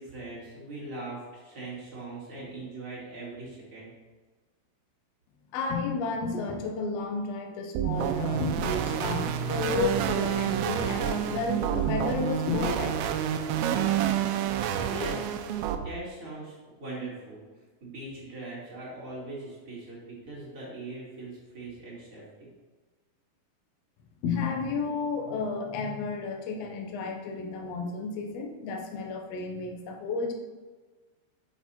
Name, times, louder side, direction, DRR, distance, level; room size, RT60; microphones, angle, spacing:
voice 1, 0.0-3.9 14.9-15.3 15.7-17.4 17.8-22.5, right 2 dB, 35° right, -7 dB, 3.6 m, -40 dB
voice 2, 5.5-13.3 24.2-30.3, left 4 dB, 65° left, 2 dB, 1.7 m, -32 dB
sound 1, 7.8-15.8, right 9 dB, 90° right, 2.5 m, -28 dB
sound 2, 8.3-12.8, right 5 dB, 60° right, 1.7 m, -39 dB
7.9 x 7.4 x 4.3 m, 1.3 s
omnidirectional pair, 4.2 m